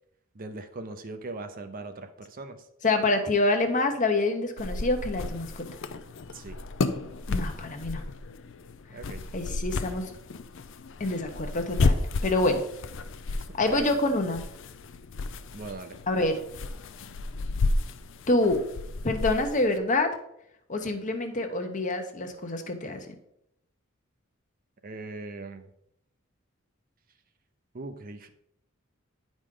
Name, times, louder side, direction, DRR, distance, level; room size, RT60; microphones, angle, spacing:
voice 1, 0.3-2.6 6.3-6.6 8.9-9.2 13.7-13.9 15.5-16.3 24.8-25.7 27.7-28.3, right 3 dB, 45° right, 8 dB, 0.6 m, -39 dB
voice 2, 2.8-5.7 7.3-8.0 9.3-10.1 11.0-12.6 13.6-14.4 16.1-16.4 18.3-18.6 19.0-20.2 20.7-23.1, left 2 dB, 35° left, 6 dB, 0.9 m, -26 dB
sound 1, 4.6-19.8, left 3 dB, 60° left, 0.5 m, -32 dB
9.7 x 5.1 x 3.8 m, 0.77 s
head